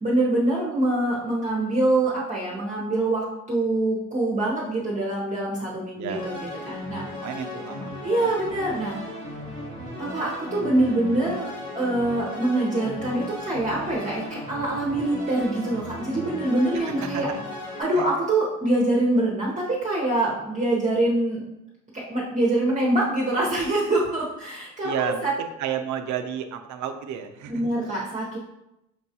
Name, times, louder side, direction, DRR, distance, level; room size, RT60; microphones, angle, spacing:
voice 1, 0.0-6.4 6.7-7.0 8.0-9.0 10.0-11.5 11.7-17.3 17.8-21.5 22.1-25.3 27.5-28.4, right 2 dB, 25° right, -5 dB, 0.9 m, -24 dB
voice 2, 5.9-6.3 7.1-7.9 8.2-8.3 16.7-17.4 17.9-18.1 24.8-27.7, right 8 dB, 70° right, 7 dB, 0.5 m, -32 dB
sound 1, 6.1-17.8, left 1 dB, 70° left, 1.4 m, -36 dB
5.8 x 2.3 x 2.8 m, 0.89 s
cardioid pair, 90°, 30 cm